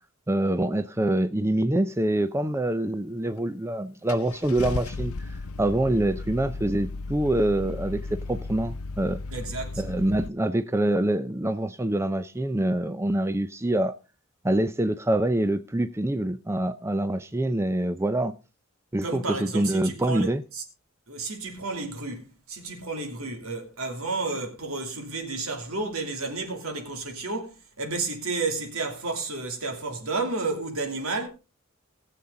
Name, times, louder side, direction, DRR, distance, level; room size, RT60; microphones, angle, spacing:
voice 1, 0.3-9.2 9.8-13.9 14.4-18.3 18.9-20.4, right 1 dB, 10° right, 0.5 m, -25 dB
Car / Engine starting, 3.4-3.5 4.1-10.3, left 3 dB, 90° left, 0.7 m, -35 dB
voice 2, 9.3-9.8 19.0-20.6 21.1-31.3, right 3 dB, 80° right, 2.7 m, -31 dB
19.5 x 7.1 x 3.8 m
head